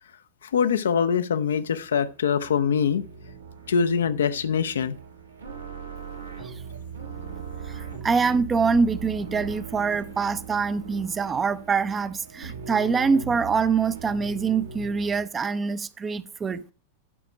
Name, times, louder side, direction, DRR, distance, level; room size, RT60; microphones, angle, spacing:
voice 1, 0.5-3.0 3.7-5.0, left 7 dB, 65° left, 0.6 m, -23 dB
sound 1, 1.4-15.2, right 5 dB, 80° right, 2.2 m, -39 dB
voice 2, 7.7-16.6, right 5 dB, 20° right, 0.5 m, -25 dB
11.0 x 5.8 x 4.9 m
figure-of-eight pair, 90°, 0 cm